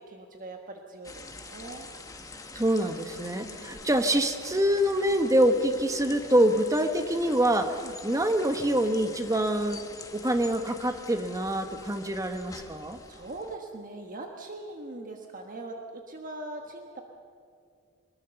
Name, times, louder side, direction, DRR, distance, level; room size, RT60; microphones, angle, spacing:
voice 1, 0.0-1.9 3.3-3.9 6.0-6.1 7.8-7.9 13.1-17.0, right 2 dB, 40° right, 3 dB, 1.3 m, -41 dB
sound 1, 1.0-13.6, left 3 dB, 15° left, 1.3 m, -45 dB
voice 2, 2.5-9.8 10.1-13.0, right 1 dB, 15° right, 7 dB, 1.0 m, -25 dB
23.0 x 21.0 x 6.9 m, 2.4 s
head